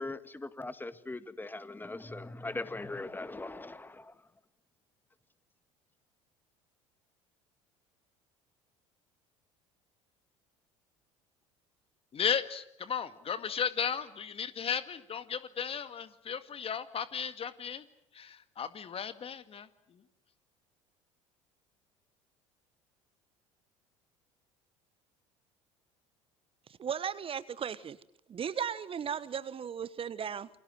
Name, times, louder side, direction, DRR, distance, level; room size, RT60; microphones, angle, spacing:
voice 1, 0.0-4.2, left 2 dB, 10° left, 13 dB, 1.9 m, -40 dB
voice 2, 12.1-17.8 18.1-20.0, left 7 dB, 35° left, 12 dB, 2.1 m, -35 dB
voice 3, 26.8-28.0 28.3-30.5, right 7 dB, 35° right, 17 dB, 1.1 m, -36 dB
28.5 x 23.5 x 7.9 m, 0.71 s
figure-of-eight pair, 65°, 16 cm